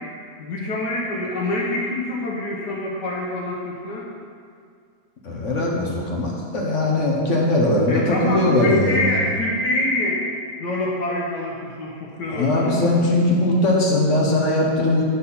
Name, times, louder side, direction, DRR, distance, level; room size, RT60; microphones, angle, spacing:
voice 1, 0.4-4.1 7.9-10.2 10.6-12.8, left 1 dB, 80° left, -4 dB, 1.7 m, -26 dB
voice 2, 5.2-9.1 12.3-15.0, left 1 dB, 50° left, -2 dB, 1.3 m, -20 dB
10.0 x 4.1 x 5.6 m, 2.2 s
omnidirectional pair, 1.8 m